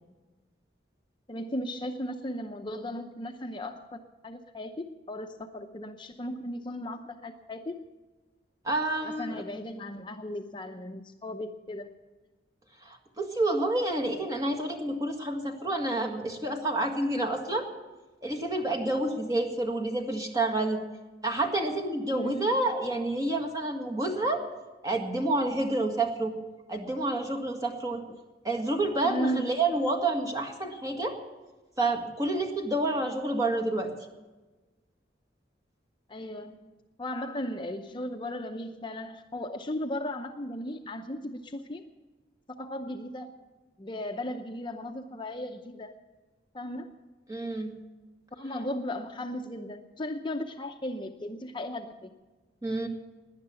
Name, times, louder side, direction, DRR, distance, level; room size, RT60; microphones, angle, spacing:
voice 1, 1.3-7.8 9.0-11.9 22.1-22.6 29.0-29.5 36.1-36.7 37.0-41.8 42.5-43.3 43.8-45.9 46.5-47.0 48.4-52.2, left 1 dB, 25° left, 5 dB, 0.7 m, -36 dB
voice 2, 8.6-9.4 12.8-17.7 18.2-20.8 21.2-24.4 24.8-26.3 26.7-28.0 28.4-31.2 31.8-33.9 47.3-47.8 52.6-52.9, right 2 dB, 20° right, 2 dB, 1.8 m, -29 dB
18.0 x 10.5 x 7.0 m, 1.2 s
head